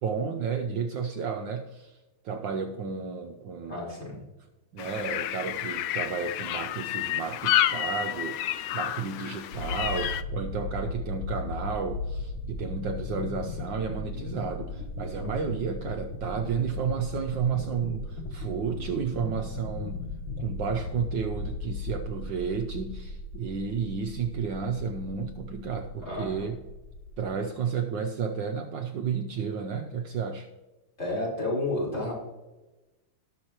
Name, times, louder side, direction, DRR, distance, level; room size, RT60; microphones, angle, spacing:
voice 1, 0.0-2.0 2.2-3.7 4.7-20.0 20.4-26.6 27.2-30.5, right 6 dB, 70° right, 5 dB, 1.2 m, -32 dB
voice 2, 3.7-4.2 15.2-15.3 26.0-26.5 31.0-32.1, left 2 dB, 30° left, -5 dB, 4.1 m, -31 dB
sound 1, 4.8-10.2, left 12 dB, 85° left, 1.5 m, -30 dB
sound 2, 9.5-27.3, left 2 dB, 65° left, 1.9 m, -37 dB
18.5 x 6.6 x 2.9 m, 1.1 s
omnidirectional pair, 2.4 m